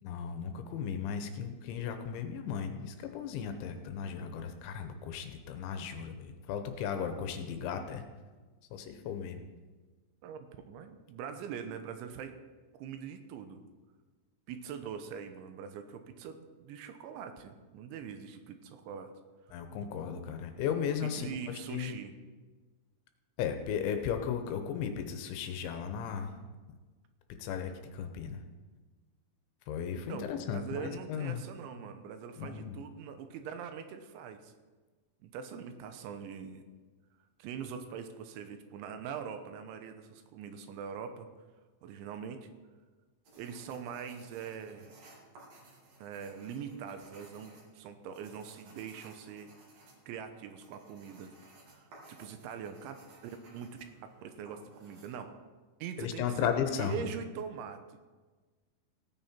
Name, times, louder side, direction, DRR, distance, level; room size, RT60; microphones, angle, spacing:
voice 1, 0.0-8.0 8.7-9.4 19.5-22.0 23.4-26.4 27.4-28.4 29.7-31.4 32.4-32.8 56.0-57.0, left 7 dB, 80° left, 7 dB, 3.1 m, -36 dB
voice 2, 10.2-12.4 12.7-13.7 14.5-19.1 21.1-22.1 30.1-34.5 35.2-36.6 37.4-41.3 41.8-42.5 43.4-44.9 46.0-49.5 50.1-51.3 51.7-53.0 53.2-53.8 54.2-55.3 55.8-56.5 56.8-58.0, right 7 dB, 80° right, 8 dB, 3.2 m, -43 dB
sound 1, 43.2-55.1, right 2 dB, 55° right, 3.7 m, -58 dB
17.0 x 9.4 x 4.3 m, 1.3 s
omnidirectional pair, 5.5 m